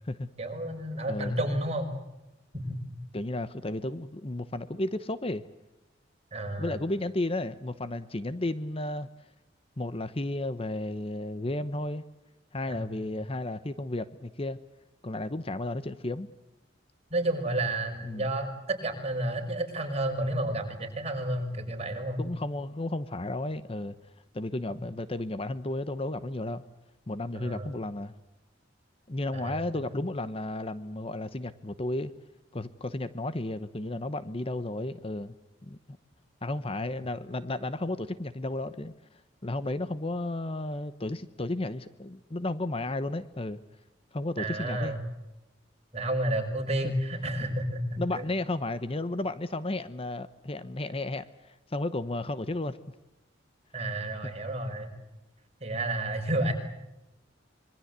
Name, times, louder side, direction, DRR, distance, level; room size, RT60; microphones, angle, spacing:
voice 1, 0.4-1.9 2.5-2.8 6.3-6.8 12.7-12.9 17.1-22.2 27.3-27.7 29.3-29.9 44.4-45.0 45.9-48.2 53.7-54.9 55.6-56.5, right 1 dB, 35° right, 4 dB, 5.3 m, -31 dB
voice 2, 1.1-1.4 3.1-5.4 6.6-9.1 9.8-12.0 12.5-14.6 15.0-16.3 18.0-18.3 22.2-23.9 24.3-26.6 27.1-28.1 29.1-32.1 32.5-35.3 35.6-35.8 36.4-38.9 39.4-43.6 44.1-45.0 46.8-46.9 48.0-52.8 54.2-54.3, left 2 dB, 30° left, 13 dB, 0.9 m, -33 dB
26.5 x 23.0 x 8.1 m, 0.95 s
head